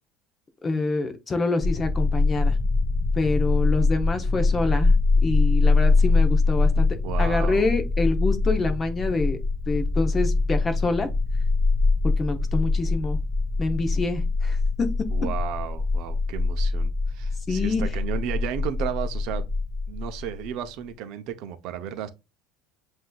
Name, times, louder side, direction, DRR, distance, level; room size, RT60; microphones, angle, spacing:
voice 1, 0.6-2.6 3.2-4.9 5.2-6.9 7.2-9.4 9.7-11.1 12.2-13.2 13.6-14.9 17.5-17.8, left 3 dB, 20° left, 0.7 m, -26 dB
sound 1, 1.6-20.5, left 3 dB, 5° left, 1.3 m, -23 dB
voice 2, 7.0-7.7 15.1-19.4 19.9-22.1, right 10 dB, 55° right, 0.6 m, -33 dB
7.6 x 2.6 x 2.3 m
cardioid pair, 145°, 0 cm